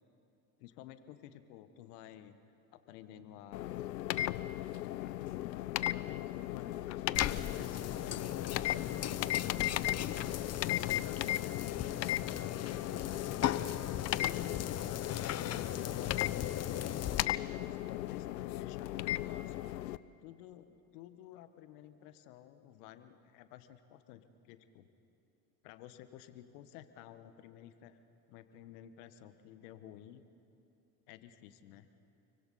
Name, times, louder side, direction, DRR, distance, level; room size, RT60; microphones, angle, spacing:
voice 1, 0.6-2.4 2.7-3.9 4.9-5.2 5.6-8.9 10.0-12.2 12.8-19.7 20.2-24.9 25.6-28.0 28.3-30.2 31.1-31.9, left 11 dB, 70° left, 11 dB, 1.4 m, -53 dB
sound 1, 3.5-20.0, left 14 dB, 90° left, 0.6 m, -36 dB
sound 2, 7.1-17.2, left 11 dB, 35° left, 0.8 m, -38 dB
29.5 x 24.0 x 4.2 m, 2.9 s
hypercardioid pair, 70°, 48 cm